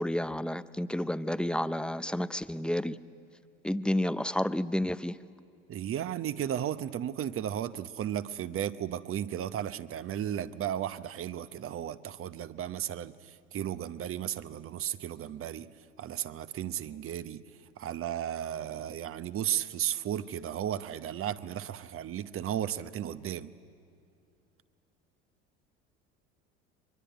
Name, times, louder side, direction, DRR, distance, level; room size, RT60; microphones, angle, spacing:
voice 1, 0.0-3.0 3.6-5.2, left 1 dB, 5° left, 0.5 m, -30 dB
voice 2, 5.7-15.7 16.0-17.4 17.8-23.5, right 10 dB, 40° right, 0.9 m, -34 dB
23.0 x 22.0 x 9.1 m
hypercardioid pair, 70°, 34 cm